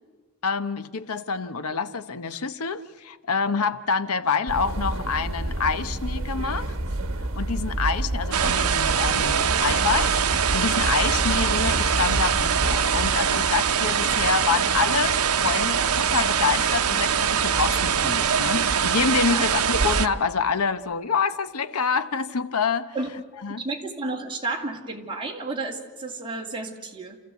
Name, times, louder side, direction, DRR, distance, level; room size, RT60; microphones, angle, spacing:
voice 1, 0.4-6.7 7.4-22.9 23.4-23.6, left 5 dB, 75° left, 12 dB, 0.9 m, -27 dB
sound 1, 4.5-13.2, right 1 dB, 65° right, 1.5 m, -30 dB
sound 2, 8.3-20.1, right 7 dB, 80° right, 0.9 m, -23 dB
voice 2, 23.6-27.2, right 3 dB, 25° right, 0 dB, 2.4 m, -32 dB
28.5 x 14.5 x 8.2 m, 1.4 s
head